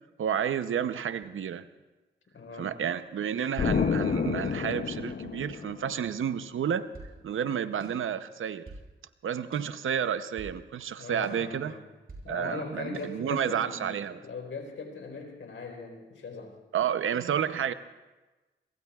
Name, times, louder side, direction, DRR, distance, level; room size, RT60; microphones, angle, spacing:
voice 1, 0.2-1.7 2.6-6.9 7.2-8.6 9.2-11.8 12.3-14.2 16.7-17.7, right 8 dB, 80° right, 0.7 m, -30 dB
voice 2, 2.3-2.8 11.0-11.8 12.2-13.9 14.2-16.5, left 4 dB, 75° left, 4.0 m, -40 dB
Explosion, 3.6-6.2, left 6 dB, 50° left, 0.7 m, -29 dB
sound 1, 6.2-7.2 7.8-8.9 9.5-10.6 11.2-12.3 12.9-13.1, right 2 dB, 50° right, 6.6 m, -48 dB
25.0 x 22.5 x 2.4 m
cardioid pair, 50°, 21 cm